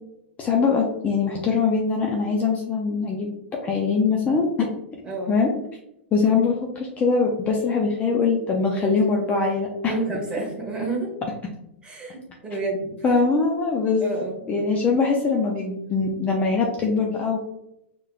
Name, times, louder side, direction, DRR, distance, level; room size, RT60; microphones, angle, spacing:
voice 1, 0.4-3.3 3.6-4.8 5.3-5.5 6.1-10.0 13.0-14.0 14.5-17.4, left 4 dB, 20° left, 0 dB, 0.5 m, -22 dB
voice 2, 5.0-5.4 9.8-11.1 11.8-12.9 14.0-14.4, right 3 dB, 15° right, -3 dB, 1.4 m, -29 dB
4.6 x 3.1 x 2.3 m, 0.85 s
hypercardioid pair, 125°, 7 cm